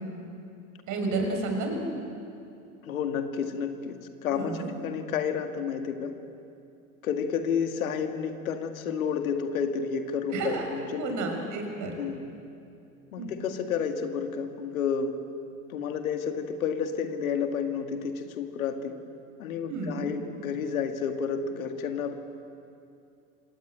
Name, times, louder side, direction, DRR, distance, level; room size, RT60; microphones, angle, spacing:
voice 1, 0.9-1.8 4.3-4.7 10.3-10.7 11.0-12.0 13.2-13.3 19.7-20.1, right 2 dB, 45° right, 3 dB, 6.4 m, -31 dB
voice 2, 2.8-6.1 7.0-11.1 12.0-12.3 13.1-15.2 15.7-19.0 19.4-22.1, left 6 dB, 75° left, 6 dB, 2.1 m, -30 dB
26.5 x 18.5 x 8.8 m, 2.6 s
hypercardioid pair, 90°, 42 cm